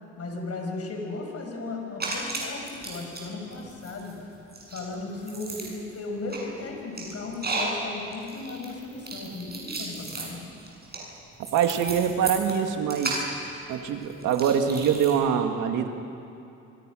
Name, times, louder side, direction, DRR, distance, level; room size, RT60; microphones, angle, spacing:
voice 1, 0.2-4.1 4.7-10.4, left 3 dB, 55° left, 1 dB, 5.8 m, -36 dB
sound 1, 2.0-3.2 3.5-15.1, right 3 dB, 30° right, 7.4 m, -35 dB
voice 2, 11.4-13.3 13.7-15.9, right 8 dB, 90° right, 5 dB, 2.1 m, -24 dB
27.0 x 26.0 x 6.4 m, 2.7 s
cardioid pair, 90°, 30 cm